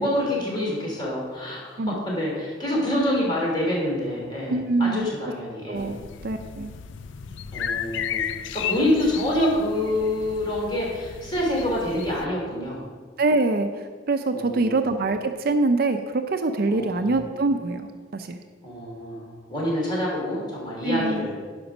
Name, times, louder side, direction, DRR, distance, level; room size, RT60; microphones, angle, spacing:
voice 1, 0.0-5.9 7.5-8.2 8.5-12.8 14.3-14.7 16.7-17.2 18.6-21.4, left 1 dB, 25° left, -4 dB, 3.1 m, -26 dB
voice 2, 4.5-5.1 5.7-6.7 13.2-18.4 20.8-21.3, right 3 dB, 50° right, 7 dB, 0.5 m, -24 dB
sound 1, 5.8-12.3, left 8 dB, 70° left, 0.4 m, -34 dB
10.5 x 5.2 x 6.0 m, 1.6 s
head